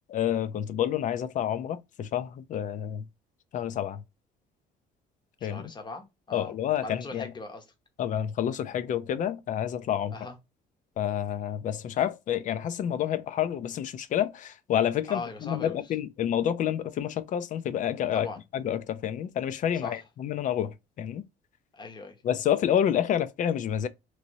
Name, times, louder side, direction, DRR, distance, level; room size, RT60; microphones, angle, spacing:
voice 1, 0.1-3.0 3.5-4.0 5.4-5.7 6.3-7.3 8.0-10.1 11.0-18.3 18.5-21.2 22.2-23.9, left 10 dB, 50° left, 0.4 m, -29 dB
voice 2, 5.4-6.6 6.8-7.6 10.1-10.4 15.1-15.9 18.1-18.4 19.7-20.0 21.7-22.2, left 3 dB, 25° left, 0.9 m, -40 dB
3.0 x 2.7 x 2.7 m
cardioid pair, 110°, 17 cm